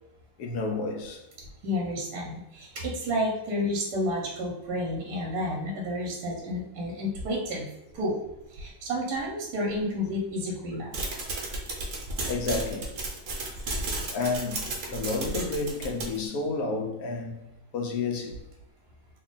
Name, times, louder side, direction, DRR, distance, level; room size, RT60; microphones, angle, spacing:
voice 1, 0.4-1.2 6.3-6.4 12.3-12.9 14.1-17.4 17.7-18.4, left 3 dB, 70° left, 1.0 m, -31 dB
voice 2, 1.6-7.7 7.9-8.2 8.5-11.0, left 1 dB, 80° right, 1.2 m, -30 dB
sound 1, 10.9-16.3, right 2 dB, 65° right, 1.1 m, -33 dB
3.1 x 2.3 x 3.7 m
omnidirectional pair, 1.7 m